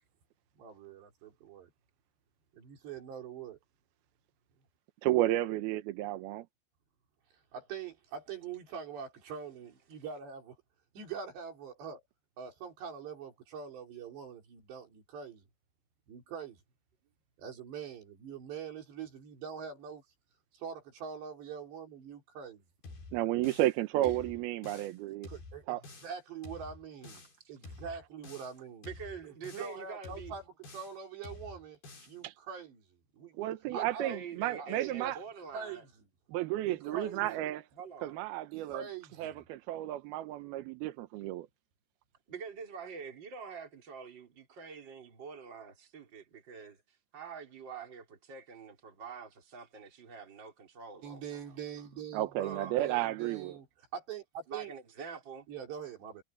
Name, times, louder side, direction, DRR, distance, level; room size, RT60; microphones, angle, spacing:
voice 1, 0.6-1.7 2.5-3.6 7.5-10.6 10.9-12.0 12.4-15.4 16.1-16.6 17.4-20.0 20.5-22.6 25.3-25.8 26.0-27.2 27.5-28.9 29.3-31.8 32.1-32.8 33.1-34.2 34.6-35.2 35.5-35.9 36.8-37.3 38.7-39.4 51.0-54.7 55.5-56.2, right 7 dB, 60° right, 6.1 m, -44 dB
voice 2, 5.0-6.5 23.1-25.3 25.7-25.8 32.2-32.3 33.4-35.2 36.3-37.6 38.0-38.8 39.2-41.5 52.1-53.6, right 15 dB, 80° right, 2.2 m, -32 dB
sound 1, 22.8-23.8 24.0-25.0 25.2-26.2 26.4-27.4 27.6-28.6 28.8-29.8 30.0-31.0 31.2-32.2, left 3 dB, 50° left, 8.0 m, -49 dB
voice 3, 28.8-30.4 33.7-35.8 36.6-37.4 37.7-38.2 42.3-46.8 47.1-51.2 52.4-52.9 54.5-55.5, right 5 dB, 25° right, 4.1 m, -45 dB
omnidirectional pair, 5.7 m